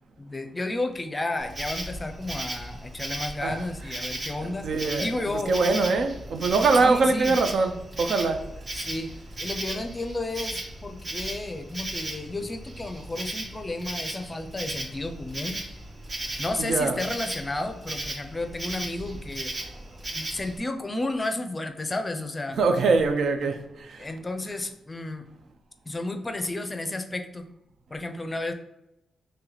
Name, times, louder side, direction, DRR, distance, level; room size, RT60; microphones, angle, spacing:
voice 1, 0.2-4.7 5.0-5.6 6.8-7.3 8.8-9.1 9.4-15.6 16.4-19.5 20.1-22.6 24.0-25.3 25.9-27.5 27.9-28.5, left 2 dB, 25° left, 0.5 m, -32 dB
Insect, 1.4-20.6, right 1 dB, 45° right, 0.8 m, -36 dB
voice 2, 4.6-5.1 5.5-8.4 16.6-17.0 22.6-24.1, right 3 dB, 70° right, 0.5 m, -23 dB
3.2 x 3.0 x 3.9 m
cardioid pair, 90°, 0 cm